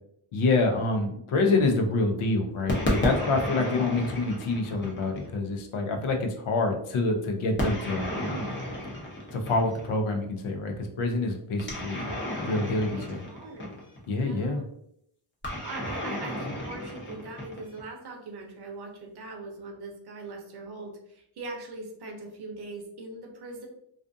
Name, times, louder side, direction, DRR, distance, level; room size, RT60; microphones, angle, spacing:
voice 1, 0.3-8.4 9.3-12.0 12.3-13.2 14.1-14.6, left 3 dB, 80° left, 3 dB, 0.7 m, -27 dB
sound 1, 2.7-5.3 7.6-9.9 11.6-14.1 15.4-17.9, left 1 dB, 25° left, 0.7 m, -32 dB
voice 2, 12.9-13.7 14.1-14.6 15.6-23.7, right 3 dB, 50° right, 2 dB, 0.7 m, -41 dB
2.4 x 2.4 x 2.5 m, 0.73 s
wide cardioid pair, 145°, 49 cm